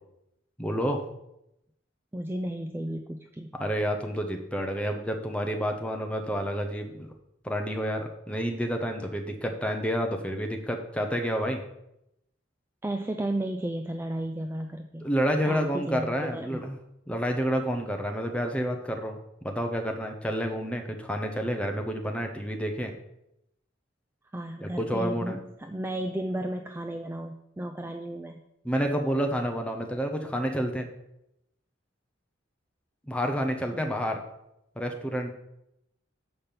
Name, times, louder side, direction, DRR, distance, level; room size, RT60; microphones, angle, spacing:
voice 1, 0.6-1.0 3.6-7.1 7.4-11.6 15.0-16.8 17.1-19.2 19.4-22.9 24.6-25.4 28.6-30.9 33.1-34.2 34.8-35.3, equal, 5° left, 3 dB, 0.8 m, -29 dB
voice 2, 2.1-3.5 12.8-15.1 15.5-16.6 24.3-28.4 33.7-33.8, right 1 dB, 10° right, 5 dB, 0.3 m, -34 dB
6.9 x 5.3 x 5.8 m, 0.84 s
head